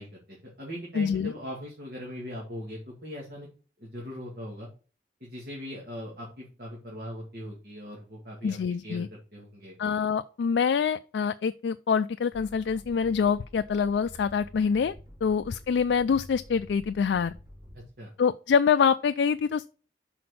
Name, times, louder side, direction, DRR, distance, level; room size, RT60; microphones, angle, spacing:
voice 1, 0.0-3.5 3.8-4.7 5.2-8.6 8.8-9.7 18.0-18.1, equal, 55° right, 2.0 m, -40 dB
voice 2, 1.0-1.3 8.4-9.1 9.8-14.9 15.2-17.3 18.2-19.7, left 6 dB, 80° left, 0.3 m, -25 dB
sound 1, 12.3-18.1, equal, 30° right, 3.3 m, -49 dB
6.0 x 4.2 x 6.3 m
head